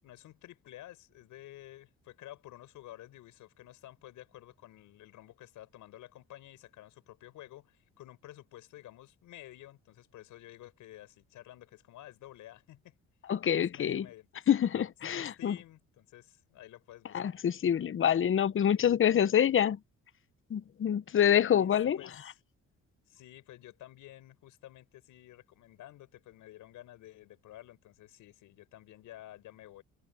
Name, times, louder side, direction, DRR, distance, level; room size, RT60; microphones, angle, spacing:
voice 1, 0.0-13.0 13.7-14.3 14.5-14.6 15.0-17.3 21.5-22.4 23.1-29.8, left 14 dB, 85° left, 5.9 m, -51 dB
voice 2, 13.3-14.0 14.5-15.6 17.1-19.8 20.5-22.0, left 9 dB, 45° left, 0.8 m, -26 dB
cardioid pair, 90°, 30 cm